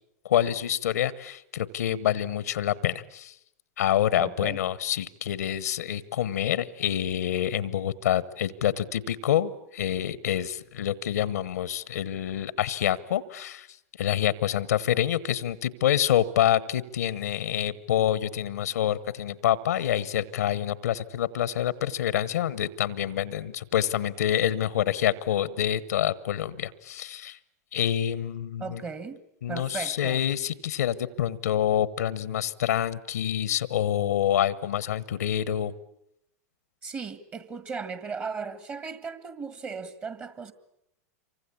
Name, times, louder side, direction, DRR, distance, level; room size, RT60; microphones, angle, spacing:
voice 1, 0.2-3.3 3.8-13.7 14.0-27.4 27.7-28.8 29.4-35.7, left 11 dB, 80° left, 1.2 m, -27 dB
voice 2, 4.2-4.6 28.6-29.2 29.5-30.2 36.8-40.5, right 5 dB, 25° right, 1.7 m, -36 dB
27.0 x 24.5 x 8.5 m
hypercardioid pair, 110°, 9 cm